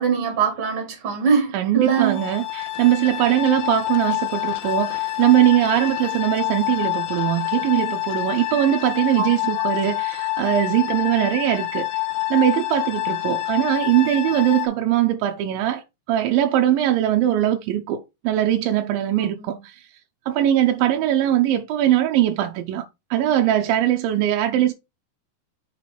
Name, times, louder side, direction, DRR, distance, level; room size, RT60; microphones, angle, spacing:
voice 1, 0.0-2.2 9.2-9.6 19.2-19.6, right 6 dB, 45° right, 2.5 m, -23 dB
voice 2, 1.5-11.9 12.3-19.8 20.3-22.9 23.1-24.7, right 12 dB, 80° right, 2.3 m, -21 dB
sound 1, 1.9-14.7, left 17 dB, 70° left, 2.2 m, -27 dB
6.1 x 4.6 x 4.3 m
omnidirectional pair, 4.3 m